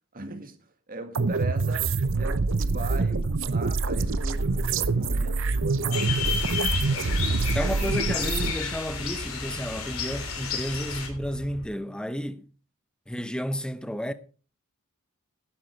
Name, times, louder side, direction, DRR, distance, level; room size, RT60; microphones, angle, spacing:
voice 1, 0.1-0.6 0.9-6.3 6.9-7.7, right 2 dB, 40° right, 1.9 m, -39 dB
sound 1, 1.1-8.5, right 3 dB, 65° right, 0.8 m, -26 dB
sound 2, 3.7-11.7, equal, 60° left, 2.5 m, -41 dB
sound 3, 5.9-11.1, left 6 dB, 80° left, 3.3 m, -32 dB
voice 2, 7.5-12.5 13.1-14.1, equal, 5° left, 0.8 m, -32 dB
12.0 x 10.0 x 4.5 m
head